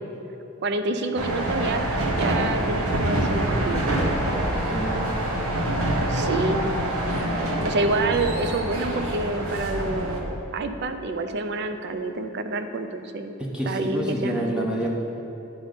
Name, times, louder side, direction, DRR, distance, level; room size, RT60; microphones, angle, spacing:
voice 1, 0.6-1.9 2.2-3.9 6.1-6.7 7.6-13.3 13.7-14.7, right 2 dB, 50° right, 8 dB, 0.5 m, -28 dB
sound 1, 1.2-10.2, right 1 dB, 85° right, 1.0 m, -26 dB
voice 2, 4.2-5.1 13.4-14.9, right 1 dB, 5° right, -2 dB, 0.7 m, -29 dB
10.0 x 4.1 x 5.1 m, 2.8 s
head